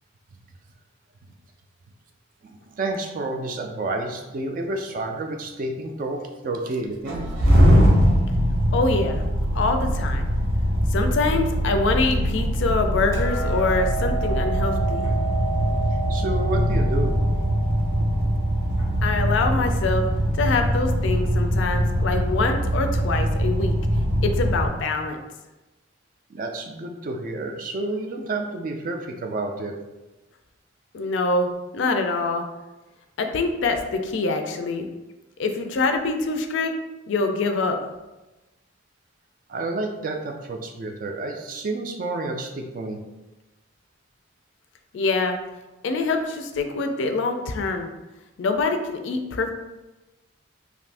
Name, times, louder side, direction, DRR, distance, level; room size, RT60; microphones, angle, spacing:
voice 1, 2.4-7.3 16.1-17.2 26.3-29.8 39.5-43.0, right 2 dB, 40° right, 4 dB, 0.3 m, -30 dB
sound 1, 7.1-24.7, equal, 75° right, 0.8 m, -22 dB
voice 2, 8.7-9.2 9.5-10.3 10.9-15.1 19.0-20.1 20.3-23.8 24.2-25.2 30.9-32.4 33.2-34.9 35.4-36.8 37.1-37.8 44.9-45.4 45.8-47.9 48.4-49.5, left 3 dB, 65° left, 5 dB, 0.3 m, -24 dB
Hammer, 13.1-19.4, right 3 dB, 15° left, 0.5 m, -32 dB
2.6 x 2.5 x 3.3 m, 1.1 s
head